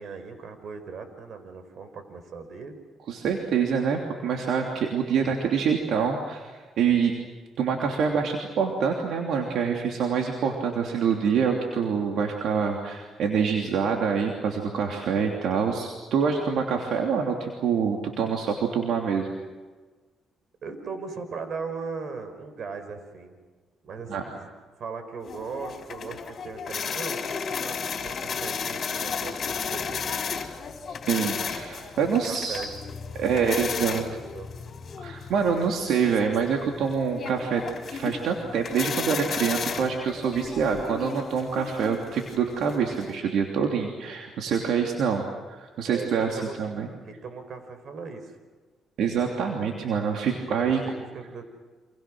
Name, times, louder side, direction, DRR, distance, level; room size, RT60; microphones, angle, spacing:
voice 1, 0.0-2.8 6.8-7.1 20.6-23.4 23.8-24.5 24.8-30.1 31.8-34.6 45.9-46.6 47.0-48.4 50.5-51.5, right 4 dB, 60° right, 9 dB, 4.6 m, -39 dB
voice 2, 3.1-7.1 7.6-19.3 24.1-24.2 31.1-32.7 33.1-34.0 35.0-37.6 37.9-46.9 49.0-50.8, right 6 dB, 75° right, 2 dB, 3.0 m, -26 dB
sound 1, 25.3-43.2, left 6 dB, 50° left, 4.0 m, -34 dB
29.5 x 26.5 x 6.3 m, 1.4 s
cardioid pair, 90°, 0 cm